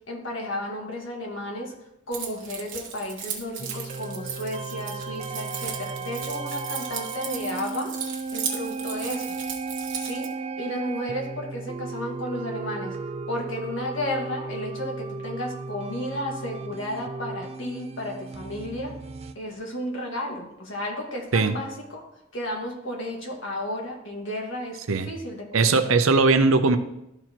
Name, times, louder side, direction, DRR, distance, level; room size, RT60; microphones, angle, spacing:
voice 1, 0.1-1.7 2.1-9.4 10.0-10.3 10.6-13.0 13.3-18.9 19.4-22.1 22.3-26.0, left 1 dB, 65° left, -1 dB, 1.8 m, -33 dB
Keys jangling, 2.1-10.3, right 8 dB, 65° right, 1.2 m, -36 dB
sound 1, 3.6-19.3, right 4 dB, 30° right, 0.4 m, -35 dB
voice 2, 25.5-26.8, right 3 dB, 85° right, 9 dB, 0.6 m, -19 dB
12.5 x 4.5 x 3.0 m, 0.84 s
head